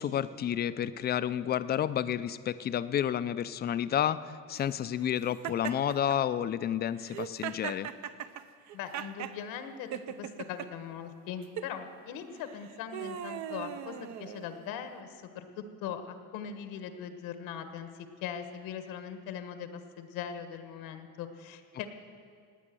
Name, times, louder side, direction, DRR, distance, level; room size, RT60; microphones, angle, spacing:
voice 1, 0.0-4.2 4.5-7.9, left 10 dB, 30° left, 14 dB, 0.4 m, -30 dB
Laughter, 5.4-6.2 7.0-9.4 9.9-10.7 11.4-11.7 12.4-14.7, right 10 dB, 55° right, 0.7 m, -39 dB
voice 2, 8.7-9.9 10.2-15.4 15.8-21.9, left 8 dB, 85° left, 8 dB, 1.4 m, -40 dB
18.5 x 9.1 x 7.6 m, 2.2 s
cardioid pair, 155°, 34 cm